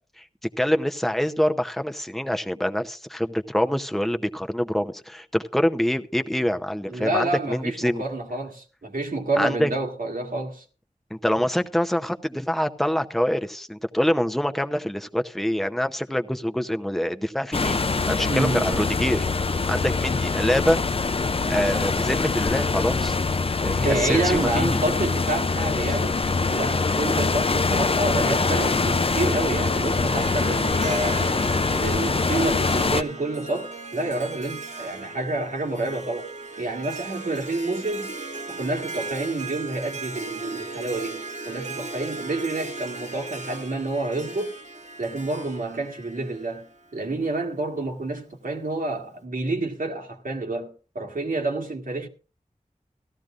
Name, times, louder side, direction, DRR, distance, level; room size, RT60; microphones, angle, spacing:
voice 1, 0.6-8.0 9.4-9.7 11.1-19.2 19.7-20.8 21.5-23.2 23.6-24.8, equal, ahead, 0.8 m, -25 dB
voice 2, 6.9-10.6 18.3-18.9 23.7-26.2 26.4-31.4 31.8-36.3 36.6-38.1 38.5-44.6 45.0-46.7 46.9-52.1, right 2 dB, 85° right, 1.7 m, -28 dB
sound 1, 17.5-33.0, left 4 dB, 45° left, 0.5 m, -24 dB
Harp, 29.8-47.1, right 3 dB, 60° right, 1.1 m, -37 dB
16.5 x 13.5 x 2.5 m
wide cardioid pair, 45°, 14 cm